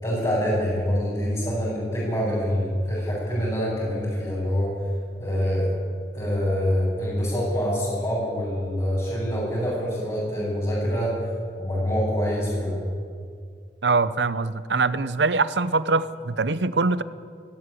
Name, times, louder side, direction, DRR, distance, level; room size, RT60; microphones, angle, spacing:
voice 1, 0.0-4.7 5.2-5.7 6.1-11.1 11.6-12.8, equal, 25° left, -10 dB, 7.0 m, -25 dB
voice 2, 13.8-17.0, right 3 dB, 80° right, 15 dB, 0.8 m, -23 dB
18.5 x 14.5 x 9.9 m, 2.3 s
head